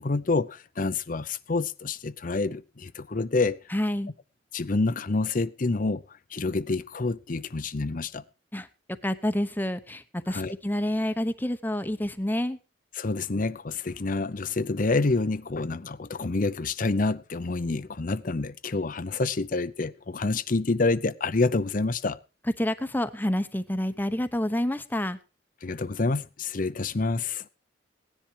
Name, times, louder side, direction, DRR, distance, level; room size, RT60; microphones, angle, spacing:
voice 1, 0.0-3.6 4.5-6.0 6.3-8.2 10.3-10.5 13.0-22.2 25.6-27.4, left 3 dB, 45° left, 0.7 m, -27 dB
voice 2, 3.7-4.1 8.5-8.7 9.0-12.6 22.6-25.2, left 1 dB, 10° left, 0.9 m, -28 dB
17.0 x 10.5 x 4.7 m
head